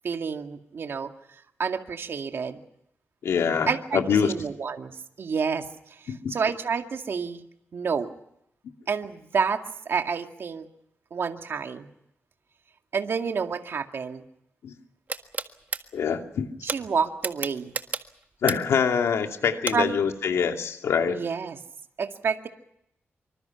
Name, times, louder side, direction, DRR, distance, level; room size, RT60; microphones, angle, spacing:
voice 1, 0.0-1.1 1.6-2.6 3.7-5.7 6.3-7.4 7.7-8.1 8.9-10.7 11.1-11.9 12.9-14.2 16.6-17.7 19.7-20.0 21.1-21.6 22.0-22.5, right 6 dB, 60° right, 5 dB, 2.1 m, -29 dB
voice 2, 3.2-4.3 6.1-6.4 14.6-14.7 15.9-16.5 18.4-21.2, left 7 dB, 90° left, 4 dB, 2.5 m, -25 dB
sound 1, 15.1-15.8 16.7-16.8 17.2-18.8 19.7-19.8, right 4 dB, 40° right, 1.6 m, -29 dB
26.0 x 25.0 x 5.9 m, 0.75 s
wide cardioid pair, 105°, 5 cm